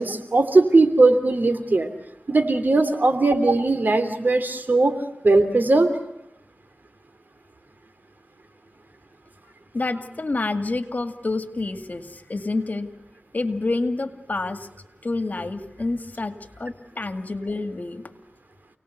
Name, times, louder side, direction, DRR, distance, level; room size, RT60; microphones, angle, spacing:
voice 1, 0.0-1.9 2.3-5.0 5.2-6.0, right 2 dB, 70° right, 9 dB, 2.8 m, -19 dB
voice 2, 9.7-12.9 13.3-14.7 15.0-18.0, left 2 dB, 60° left, 8 dB, 2.1 m, -28 dB
29.0 x 19.0 x 8.1 m, 0.81 s
wide cardioid pair, 50°, 3 cm